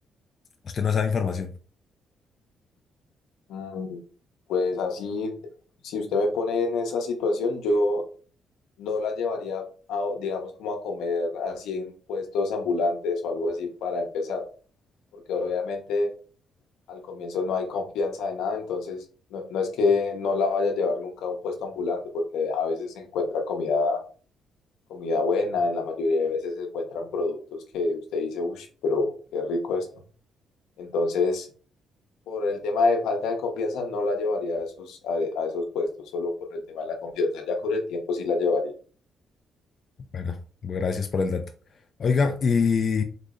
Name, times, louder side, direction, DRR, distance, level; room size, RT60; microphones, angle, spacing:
voice 1, 0.6-1.5 40.1-40.4 40.6-41.5 42.0-43.0, left 5 dB, 50° left, 0.4 m, -24 dB
voice 2, 3.5-4.0 4.5-5.3 5.8-8.0 8.8-14.4 15.3-16.1 16.9-19.0 19.3-24.0 24.9-29.9 30.8-31.5 32.3-38.7, left 3 dB, 90° left, 0.8 m, -27 dB
3.7 x 2.0 x 3.7 m
cardioid pair, 90°, 0 cm